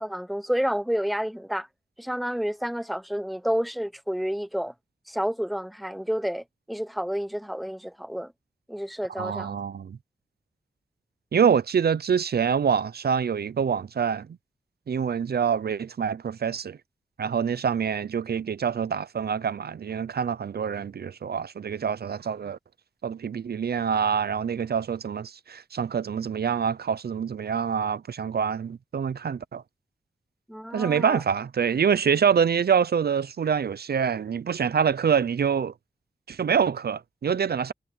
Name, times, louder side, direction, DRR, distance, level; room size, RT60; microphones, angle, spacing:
voice 1, 0.0-1.7 2.0-4.7 5.1-8.3 8.7-9.6 30.5-31.2, equal, ahead, 0.8 m, -30 dB
voice 2, 9.2-10.0 11.3-14.3 14.9-16.8 17.2-22.6 23.0-29.6 30.7-35.7 36.3-37.7, right 7 dB, 70° right, 0.5 m, -26 dB
wide cardioid pair, 90°, 17 cm